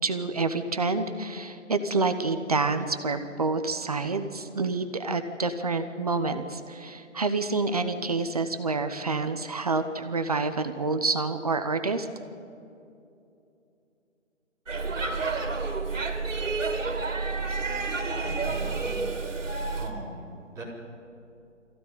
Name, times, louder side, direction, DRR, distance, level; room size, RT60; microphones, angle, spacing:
voice 1, 0.0-12.1, right 3 dB, 30° right, 9 dB, 0.9 m, -28 dB
Speech / Shout / Subway metro underground, 14.7-19.9, right 3 dB, 70° right, 3.0 m, -30 dB
voice 2, 18.2-19.1 19.7-20.6, right 2 dB, 10° right, -8 dB, 4.0 m, -40 dB
22.5 x 15.5 x 9.5 m, 2.7 s
figure-of-eight pair, 160°, 38 cm